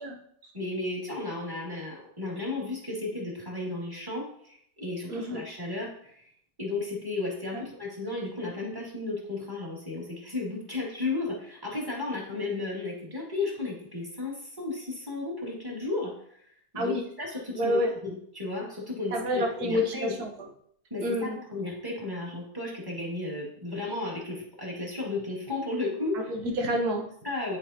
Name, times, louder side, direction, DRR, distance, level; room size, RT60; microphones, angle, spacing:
voice 1, 0.5-6.2 6.6-16.1 16.7-20.2 20.9-26.3 27.2-27.6, left 3 dB, 15° right, -4 dB, 1.9 m, -34 dB
voice 2, 5.1-5.4 7.5-7.6 16.7-17.0 17.5-17.9 19.1-20.5 21.0-21.4 26.1-27.1, equal, 85° right, 1 dB, 1.7 m, -28 dB
11.0 x 4.2 x 2.8 m, 0.67 s
omnidirectional pair, 1.6 m